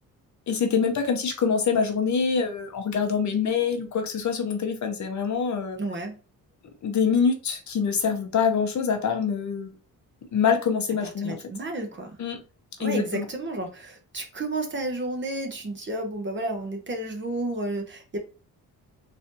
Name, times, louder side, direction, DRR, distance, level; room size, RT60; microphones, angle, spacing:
voice 1, 0.5-5.8 6.8-9.8 10.3-11.4 12.2-12.4 12.8-13.2, left 6 dB, 55° left, 5 dB, 0.7 m, -25 dB
voice 2, 5.8-6.2 11.0-12.2 12.8-18.2, right 2 dB, 30° right, 3 dB, 0.9 m, -31 dB
3.9 x 3.2 x 2.6 m, 0.34 s
wide cardioid pair, 165°, 35 cm